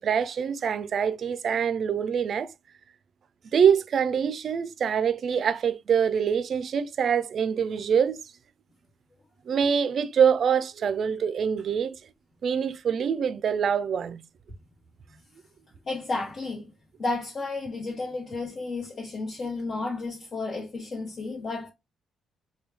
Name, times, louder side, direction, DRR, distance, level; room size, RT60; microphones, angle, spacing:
voice 1, 0.0-2.5 3.5-8.2 9.5-12.0 12.4-14.2, right 7 dB, 55° right, 0.4 m, -25 dB
voice 2, 15.9-16.7 17.0-21.7, left 3 dB, 45° left, 1.1 m, -32 dB
3.1 x 2.2 x 3.3 m
cardioid pair, 90°, 0 cm